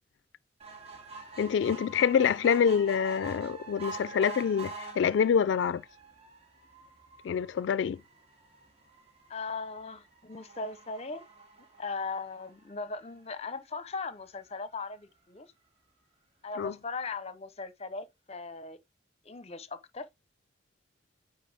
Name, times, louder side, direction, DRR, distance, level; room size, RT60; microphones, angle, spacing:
sound 1, 0.6-13.2 13.8-13.9 14.2-14.3 14.5-14.6, right 4 dB, 35° right, 2.2 m, -46 dB
voice 1, 1.4-5.8 7.2-8.0 16.6-16.7, left 7 dB, 85° left, 0.3 m, -26 dB
voice 2, 9.3-11.3 11.8-15.5 16.4-18.8 19.2-20.1, left 4 dB, 35° left, 0.7 m, -38 dB
9.2 x 3.9 x 3.4 m
head